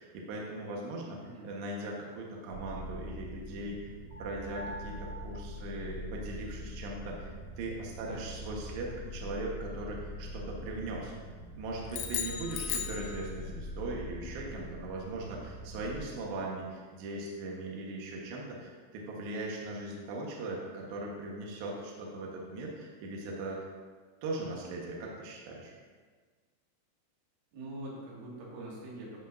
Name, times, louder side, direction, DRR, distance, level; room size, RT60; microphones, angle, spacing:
voice 1, 0.0-1.2 1.4-3.9 4.2-7.3 7.6-23.6 24.2-25.7, right 2 dB, 70° right, -2 dB, 3.2 m, -39 dB
voice 2, 1.2-1.5 8.0-8.3 12.6-12.8 15.2-15.4 27.5-29.2, right 1 dB, 90° right, -5 dB, 4.5 m, -44 dB
sound 1, 2.5-16.0, left 1 dB, 55° right, 2.5 m, -43 dB
sound 2, 11.9-13.7, left 8 dB, 85° left, 3.0 m, -36 dB
13.5 x 8.2 x 2.6 m, 1.5 s
omnidirectional pair, 5.4 m